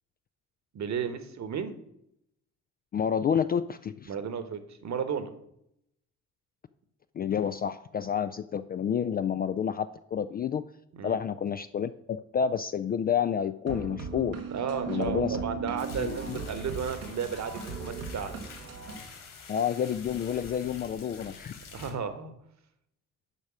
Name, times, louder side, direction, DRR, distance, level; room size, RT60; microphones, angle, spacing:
voice 1, 0.7-1.8 4.1-5.3 10.9-11.2 14.5-18.5 21.7-22.3, right 7 dB, 45° right, 11 dB, 1.2 m, -33 dB
voice 2, 2.9-4.1 7.1-10.6 11.0-14.4 14.9-15.4 16.0-16.4 19.5-21.6, left 8 dB, 25° left, 11 dB, 0.3 m, -29 dB
sound 1, 13.7-19.0, right 5 dB, 80° right, 1.3 m, -37 dB
sound 2, 15.8-21.9, left 5 dB, 55° left, 2.5 m, -47 dB
8.4 x 5.2 x 6.1 m, 0.78 s
figure-of-eight pair, 45°, 39 cm